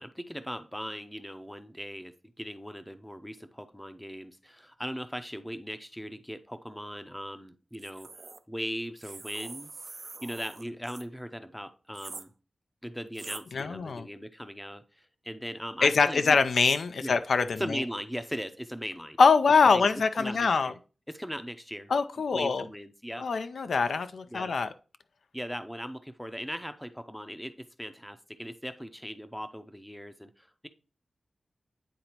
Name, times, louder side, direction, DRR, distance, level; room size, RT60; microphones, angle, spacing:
voice 1, 0.0-8.1 8.5-9.7 10.2-12.3 12.8-16.4 17.0-17.2 17.6-19.2 19.7-19.9 20.1-20.8 21.1-21.9 22.3-23.3 24.3-24.5 25.3-30.7, equal, 5° left, 10 dB, 0.5 m, -39 dB
sound 1, 7.7-8.4 9.0-11.1 11.9-12.3 13.1-13.4, right 3 dB, 45° right, 0.4 m, -44 dB
voice 2, 13.5-14.1 15.8-17.8 19.2-20.7 21.9-22.6 23.2-24.7, left 5 dB, 80° left, 10 dB, 0.4 m, -24 dB
9.4 x 3.9 x 2.9 m, 0.35 s
wide cardioid pair, 90°, 0 cm